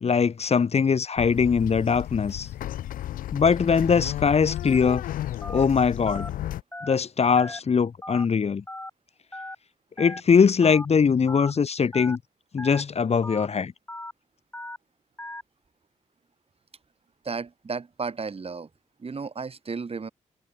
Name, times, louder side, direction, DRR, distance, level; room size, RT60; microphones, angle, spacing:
voice 1, 0.0-2.5 3.3-5.0 5.5-6.3 6.8-8.6 10.0-12.2 12.5-13.7, left 6 dB, 50° left, 1.3 m, -21 dB
sound 1, 1.2-6.6, left 13 dB, 90° left, 1.6 m, -33 dB
Telephone, 5.4-5.6 6.1-6.3 6.7-6.9 7.4-7.6 8.0-8.3 8.7-8.9 9.3-9.6 10.0-10.2 10.6-10.9 11.3-11.5 11.9-12.2 12.6-12.8 13.2-13.5 13.9-14.1 14.5-14.8 15.2-15.4, left 1 dB, 15° left, 7.4 m, -37 dB
voice 2, 17.2-18.7 19.0-20.1, right 4 dB, 45° right, 6.4 m, -33 dB
cardioid pair, 60°, 14 cm